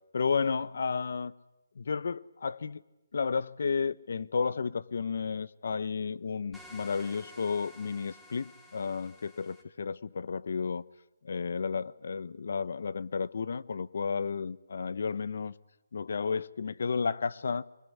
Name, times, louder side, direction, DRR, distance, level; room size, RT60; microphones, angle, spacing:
voice 1, 0.1-1.3 1.8-2.8 3.1-10.8 11.2-15.5 15.9-17.6, left 5 dB, 60° left, 0.9 m, -32 dB
sound 1, 6.5-9.6, left 1 dB, ahead, 2.0 m, -52 dB
23.5 x 21.5 x 9.5 m
hypercardioid pair, 170°, 0 cm